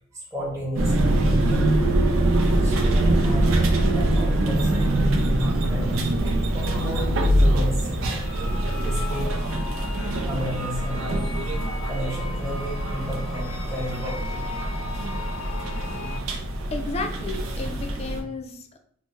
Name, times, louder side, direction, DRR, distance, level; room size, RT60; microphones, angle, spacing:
voice 1, 0.1-1.4 2.4-3.6 3.9-5.0 5.7-8.2 8.8-9.4 10.2-11.2 11.8-14.3, equal, 15° right, -6 dB, 0.9 m, -33 dB
sound 1, 0.7-18.2, right 1 dB, 80° right, 0.5 m, -23 dB
sound 2, 8.2-16.2, left 3 dB, 85° left, 0.6 m, -38 dB
voice 2, 16.7-18.8, left 3 dB, 30° left, 5 dB, 0.4 m, -33 dB
3.2 x 2.1 x 3.1 m, 0.62 s
head